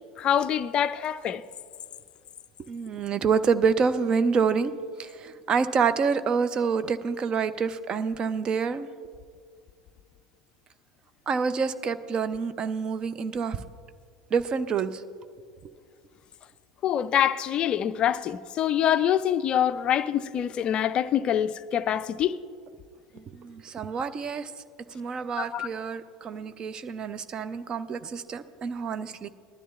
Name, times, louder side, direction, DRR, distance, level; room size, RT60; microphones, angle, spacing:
voice 1, 0.2-1.4 16.8-22.4 25.4-25.7, left 10 dB, 40° left, 0.4 m, -25 dB
voice 2, 2.6-4.7 5.0-8.9 11.3-13.6 14.3-15.0 23.1-24.5 24.9-29.3, right 5 dB, 35° right, 0.5 m, -27 dB
19.5 x 12.5 x 2.4 m
figure-of-eight pair, 75°, 3 cm